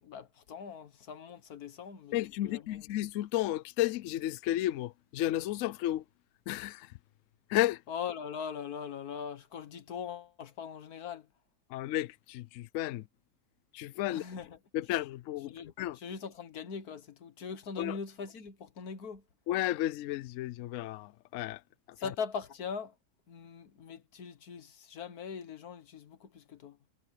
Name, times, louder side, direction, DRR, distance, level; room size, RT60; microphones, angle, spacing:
voice 1, 0.0-2.9 7.9-11.3 14.1-14.6 15.5-19.2 22.0-23.0 23.3-26.8, left 6 dB, 60° left, 1.7 m, -41 dB
voice 2, 2.1-6.0 6.5-6.9 7.5-7.8 11.7-13.0 13.7-14.2 14.7-16.0 17.8-18.0 19.5-21.6, left 14 dB, 85° left, 0.7 m, -33 dB
omnidirectional pair, 1.9 m